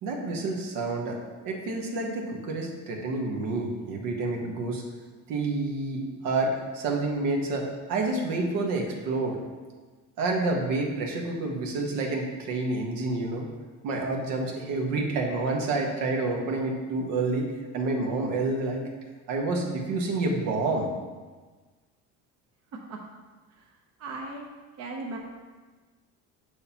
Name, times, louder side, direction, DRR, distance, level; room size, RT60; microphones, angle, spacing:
voice 1, 0.0-1.2 1.4-4.8 5.3-9.4 10.2-13.5 13.8-17.5 17.7-18.8 19.3-20.9, right 3 dB, 75° right, 0 dB, 1.3 m, -28 dB
voice 2, 24.0-24.4 24.8-25.2, right 3 dB, 50° right, 0 dB, 0.9 m, -36 dB
7.2 x 6.4 x 2.9 m, 1.3 s
cardioid pair, 120°, 34 cm